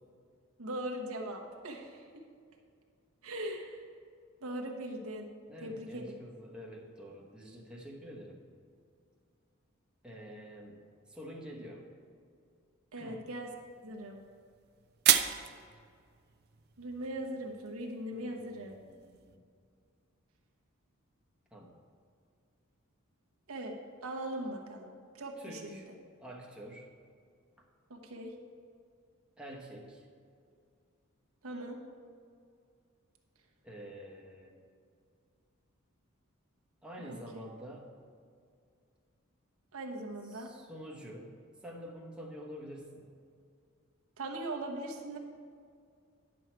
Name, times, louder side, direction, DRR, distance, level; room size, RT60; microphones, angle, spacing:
voice 1, 0.6-2.2 3.2-3.9 4.4-5.3 5.6-6.1 12.9-13.5 13.8-14.2 16.8-18.7 23.5-23.7 24.0-25.9 27.9-28.3 31.4-31.8 37.0-37.2 39.7-40.5 44.2-45.2, right 1 dB, 80° right, 1 dB, 1.0 m, -40 dB
voice 2, 5.5-8.4 10.0-10.8 11.1-11.9 13.0-13.3 18.1-19.4 21.5-21.7 25.4-25.9 26.2-26.9 27.6-27.7 29.4-30.1 33.6-34.6 36.8-37.9 40.3-43.1, equal, 5° right, -2 dB, 1.1 m, -47 dB
sound 1, 13.4-19.4, right 11 dB, 50° right, 0.4 m, -35 dB
10.5 x 6.3 x 4.5 m, 2.2 s
head